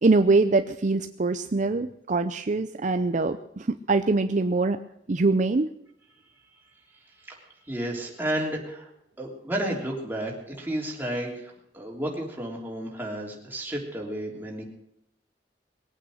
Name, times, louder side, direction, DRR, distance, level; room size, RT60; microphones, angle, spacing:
voice 1, 0.0-4.8 5.1-5.7, right 3 dB, 45° right, 9 dB, 0.6 m, -23 dB
voice 2, 7.7-8.9 9.2-14.6, right 1 dB, 10° right, -1 dB, 3.3 m, -32 dB
21.0 x 9.1 x 6.4 m, 0.78 s
head